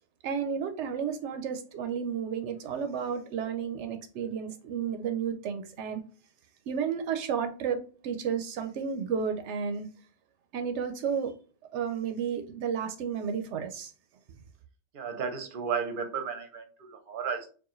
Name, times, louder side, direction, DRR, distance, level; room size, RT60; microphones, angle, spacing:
voice 1, 0.2-6.0 6.7-9.9 10.5-11.3 11.7-13.9, right 7 dB, 80° right, 0.9 m, -32 dB
voice 2, 14.9-17.5, right 6 dB, 50° right, 0.8 m, -33 dB
4.6 x 2.5 x 3.0 m
omnidirectional pair, 1.2 m